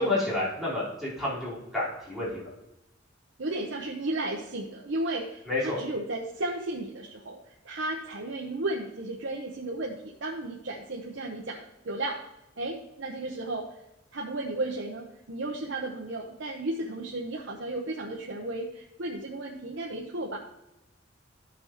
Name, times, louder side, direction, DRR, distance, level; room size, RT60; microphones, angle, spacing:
voice 1, 0.0-2.5 5.5-5.8, left 2 dB, ahead, -9 dB, 3.7 m, -29 dB
voice 2, 3.4-12.2 12.6-13.7 14.1-20.4, right 2 dB, 65° right, -1 dB, 0.9 m, -34 dB
13.5 x 6.1 x 3.0 m, 0.93 s
head